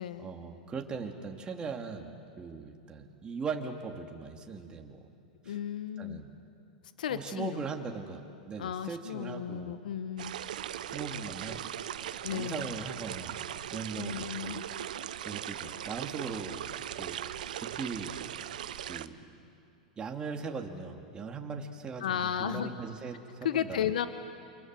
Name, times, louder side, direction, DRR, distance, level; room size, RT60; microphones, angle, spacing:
voice 1, 0.0-5.1 5.4-5.6 6.0-6.3 7.1-9.8 10.8-11.8 12.3-13.4 13.7-16.6 17.0-17.2 17.5-18.1 18.4-18.6 18.9-19.1 20.0-23.9, right 5 dB, 20° right, 2 dB, 2.6 m, -40 dB
voice 2, 5.4-6.3 7.0-7.7 8.6-10.4 12.2-12.7 14.0-14.6 22.0-22.7 23.4-24.1, left 9 dB, 80° left, 10 dB, 1.2 m, -34 dB
sound 1, 10.2-19.1, right 10 dB, 75° right, 0.9 m, -39 dB
29.0 x 26.0 x 7.7 m, 2.5 s
hypercardioid pair, 120°, 4 cm